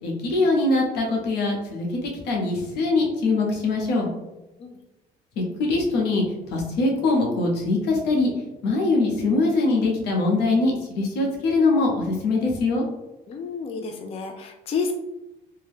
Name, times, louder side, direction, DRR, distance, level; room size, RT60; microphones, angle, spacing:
voice 1, 0.0-4.1 5.4-8.3 8.6-12.8, left 3 dB, 80° left, -1 dB, 0.9 m, -22 dB
voice 2, 13.3-14.9, left 5 dB, 35° left, 3 dB, 0.3 m, -30 dB
2.7 x 2.2 x 3.4 m, 0.98 s
cardioid pair, 110°, 17 cm